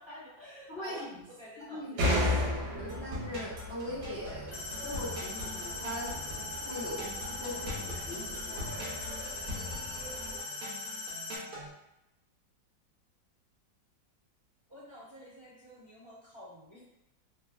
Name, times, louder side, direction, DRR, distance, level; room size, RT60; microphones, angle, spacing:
voice 1, 0.0-2.0 14.7-16.8, left 1 dB, 20° right, -12 dB, 0.9 m, -49 dB
voice 2, 0.7-1.1 1.6-2.2 2.4-4.6 4.8-6.1 6.6-8.7, left 1 dB, 55° left, -10 dB, 0.6 m, -40 dB
sound 1, 2.0-10.4, left 1 dB, 80° right, 1.3 m, -36 dB
sound 2, 2.9-11.7, left 1 dB, 60° right, 1.0 m, -43 dB
sound 3, 4.5-11.4, left 3 dB, 85° left, 1.3 m, -40 dB
3.2 x 2.0 x 2.4 m, 0.87 s
omnidirectional pair, 2.0 m